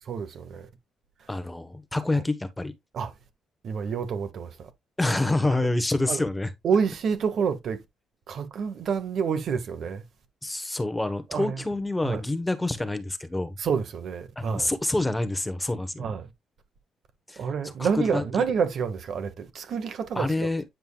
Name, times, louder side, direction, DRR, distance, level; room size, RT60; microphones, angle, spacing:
voice 1, 0.1-0.7 1.2-1.3 2.9-3.1 3.6-4.7 6.1-6.2 6.6-7.8 8.3-10.0 11.3-11.6 12.0-12.2 13.6-14.7 16.0-16.3 17.4-20.5, right 6 dB, 65° right, 1.6 m, -28 dB
voice 2, 1.3-2.7 5.0-6.5 10.4-13.6 14.4-16.1 17.3-17.4 17.8-18.2 20.2-20.6, left 2 dB, 10° left, 1.1 m, -27 dB
9.2 x 5.3 x 2.3 m
cardioid pair, 90°, 0 cm